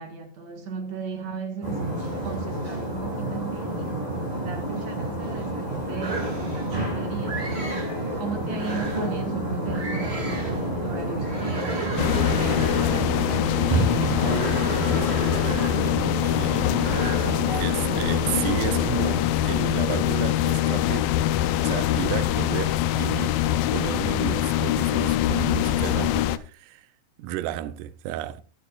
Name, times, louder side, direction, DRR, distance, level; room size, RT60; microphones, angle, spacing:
voice 1, 0.0-2.0 2.2-7.9 8.2-14.6, right 4 dB, 55° right, 2.8 m, -37 dB
sound 1, 1.6-19.2, right 1 dB, 35° right, 7.7 m, -29 dB
sound 2, 6.0-6.8 7.3-8.0 8.5-9.2 9.7-10.7 11.2-13.2 13.9-16.1 16.7-17.5, right 2 dB, 20° right, 2.1 m, -34 dB
sound 3, 12.0-26.4, left 12 dB, 80° left, 2.4 m, -24 dB
voice 2, 16.2-16.6 17.0-17.1 17.5-21.1 21.6-23.4 23.7-26.9 27.2-28.4, right 13 dB, 75° right, 2.0 m, -32 dB
23.0 x 7.8 x 2.5 m
omnidirectional pair, 4.1 m